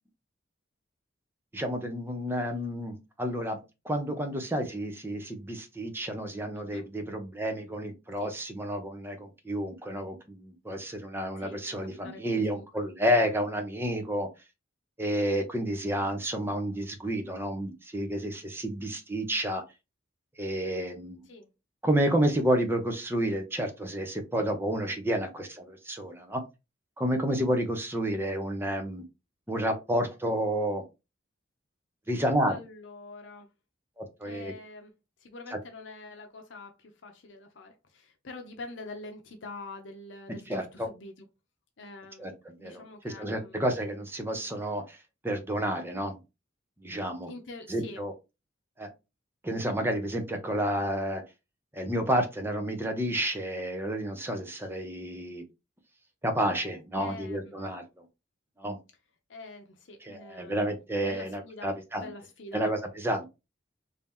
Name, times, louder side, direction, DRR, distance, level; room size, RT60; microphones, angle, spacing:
voice 1, 1.5-3.6 3.8-14.3 15.0-19.6 20.4-21.3 21.8-26.4 27.0-29.0 29.5-30.8 32.1-32.6 34.0-34.5 35.5-35.6 40.5-40.9 42.2-45.0 45.2-46.2 46.8-47.3 47.7-48.1 48.8-48.9 49.4-51.2 51.7-55.4 56.2-57.8 58.6-58.8 60.0-62.1 62.5-63.3, right 1 dB, 10° right, 5 dB, 0.8 m, -30 dB
voice 2, 11.9-12.7 21.3-21.5 32.5-33.5 34.2-34.9 35.2-41.2 41.8-43.7 47.2-48.0 56.9-57.7 59.3-61.7 61.9-62.7, left 2 dB, 75° left, 4 dB, 0.7 m, -45 dB
3.4 x 2.8 x 3.5 m, 0.26 s
head